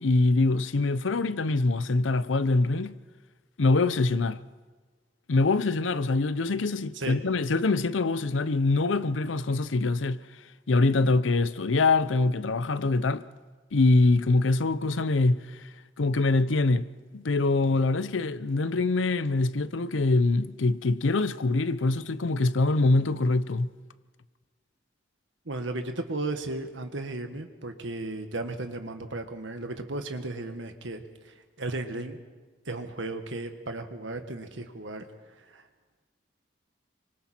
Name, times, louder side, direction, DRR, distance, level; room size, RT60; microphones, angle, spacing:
voice 1, 0.0-3.0 3.6-4.4 5.3-10.2 10.7-13.2 13.7-15.6 16.0-16.9 17.1-23.7, left 3 dB, 90° left, 0.7 m, -24 dB
voice 2, 25.4-32.2 32.7-35.0 35.5-35.6, right 2 dB, 85° right, 1.7 m, -35 dB
27.0 x 24.5 x 4.5 m
head